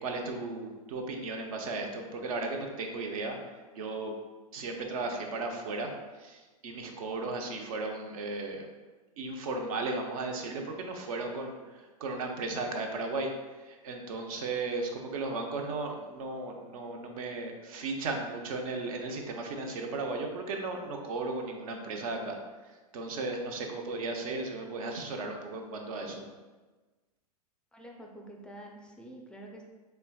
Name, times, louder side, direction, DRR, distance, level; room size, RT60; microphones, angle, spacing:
voice 1, 0.0-3.4 3.7-4.1 4.5-5.9 6.2-8.7 9.2-22.4 22.9-26.2, right 3 dB, 60° right, 3 dB, 0.7 m, -35 dB
voice 2, 27.7-29.6, right 1 dB, 5° left, 0 dB, 0.4 m, -47 dB
4.4 x 3.3 x 2.3 m, 1.3 s
hypercardioid pair, 115°, 20 cm